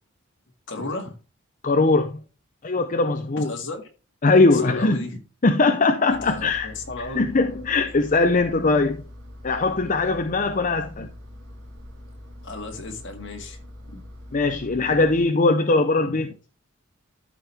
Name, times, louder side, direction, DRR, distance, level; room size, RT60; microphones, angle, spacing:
voice 1, 0.7-1.2 3.4-3.8 4.5-5.2 6.2-7.3 12.4-13.6 13.8-14.0 16.0-16.3, left 2 dB, 60° left, 2.0 m, -34 dB
voice 2, 1.6-2.2 2.6-3.5 4.2-5.0 5.4-6.7 7.1-9.0 9.4-11.1 14.3-16.3, left 3 dB, 40° left, 0.6 m, -20 dB
Engine, 6.1-15.2, left 1 dB, 60° right, 2.1 m, -43 dB
13.0 x 4.5 x 3.4 m
head